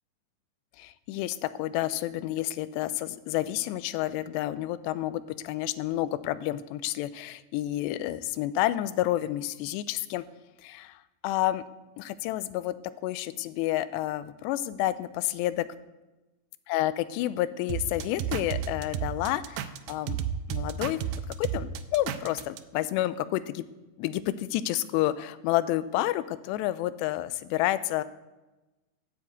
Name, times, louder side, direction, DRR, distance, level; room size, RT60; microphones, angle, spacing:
voice 1, 0.8-10.2 10.6-11.6 12.0-12.8 13.0-15.7 16.7-20.2 20.5-21.0 21.4-23.7 24.0-28.0, left 14 dB, 85° left, 15 dB, 2.7 m, -30 dB
sound 1, 17.7-22.6, right 9 dB, 80° right, 2.2 m, -32 dB
11.0 x 7.7 x 8.1 m, 1.1 s
omnidirectional pair, 4.9 m